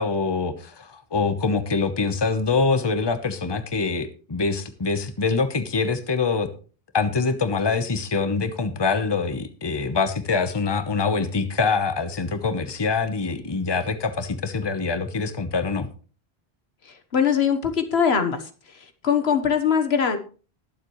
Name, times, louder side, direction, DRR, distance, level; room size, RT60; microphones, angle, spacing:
voice 1, 0.0-6.5 6.9-15.9, left 4 dB, 25° left, 10 dB, 1.0 m, -24 dB
voice 2, 17.1-18.4 19.0-20.2, left 7 dB, 85° left, 8 dB, 1.5 m, -21 dB
20.5 x 7.5 x 3.1 m, 0.37 s
omnidirectional pair, 1.0 m